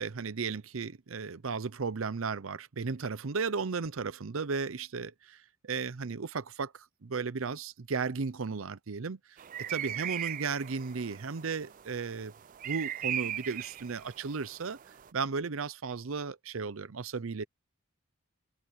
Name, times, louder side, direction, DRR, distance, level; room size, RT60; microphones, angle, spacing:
voice 1, 0.0-9.2 9.7-12.3 12.6-14.8 15.1-17.4, right 5 dB, 80° right, 0.7 m, -35 dB
sound 1, 9.4-15.1, right 11 dB, 40° right, 0.3 m, -39 dB
head